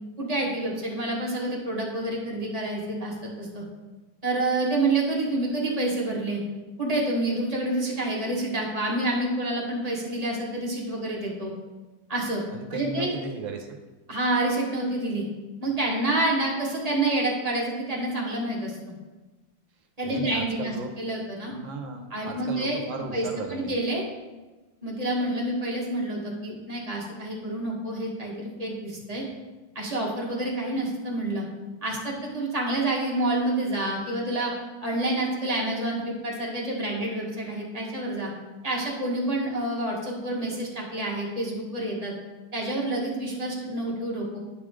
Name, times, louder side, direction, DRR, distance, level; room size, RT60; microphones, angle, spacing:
voice 1, 0.2-3.6 4.2-6.4 6.8-11.5 12.1-12.4 12.7-13.1 14.1-15.2 15.6-18.8 20.0-21.5 22.1-24.0 24.8-29.2 29.7-31.4 31.8-34.5 34.8-38.3 38.6-42.1 42.5-44.4, right 2 dB, 20° right, -3 dB, 1.4 m, -28 dB
voice 2, 12.5-13.8 20.0-20.9 21.5-23.7, right 3 dB, 70° right, 4 dB, 1.6 m, -36 dB
11.0 x 4.9 x 3.7 m, 1.2 s
omnidirectional pair, 2.2 m